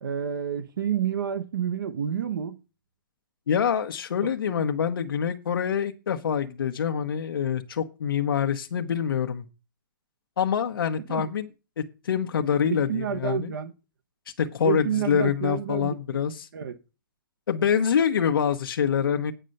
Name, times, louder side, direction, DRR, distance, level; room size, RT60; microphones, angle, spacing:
voice 1, 0.0-2.6 4.4-4.7 11.1-11.2 12.7-13.7 14.6-16.2 16.5-16.8, right 9 dB, 70° right, 0.9 m, -29 dB
voice 2, 3.5-9.4 10.4-11.5 11.8-13.5 14.4-16.5 17.5-19.3, left 7 dB, 90° left, 1.0 m, -25 dB
9.0 x 5.4 x 7.6 m
hypercardioid pair, 180°, 11 cm